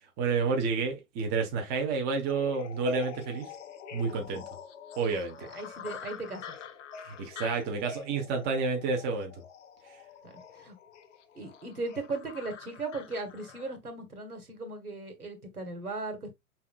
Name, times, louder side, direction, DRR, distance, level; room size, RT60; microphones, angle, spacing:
voice 1, 0.2-3.5 3.9-4.4 5.0-5.5 7.0-9.3, right 4 dB, 20° right, 1.0 m, -30 dB
sound 1, 2.3-13.8, left 6 dB, 55° left, 0.8 m, -46 dB
voice 2, 5.5-6.5 10.2-10.8 11.4-16.3, right 3 dB, 80° right, 1.8 m, -37 dB
5.8 x 3.7 x 2.4 m
figure-of-eight pair, 110°, 44 cm